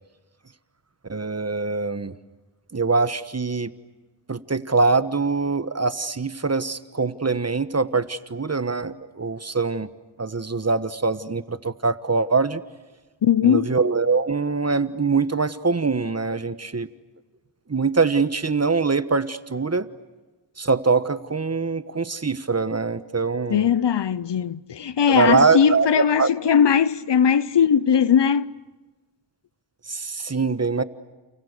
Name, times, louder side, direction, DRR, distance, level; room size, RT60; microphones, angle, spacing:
voice 1, 1.1-2.2 2.7-3.7 4.3-9.9 10.2-12.6 13.4-16.9 17.7-19.9 20.6-23.7 25.1-26.3 29.9-30.8, right 4 dB, 35° right, 1.3 m, -23 dB
voice 2, 13.2-13.7 23.5-28.5, left 8 dB, 70° left, 0.8 m, -19 dB
29.5 x 29.5 x 6.7 m
cardioid pair, 45°, 44 cm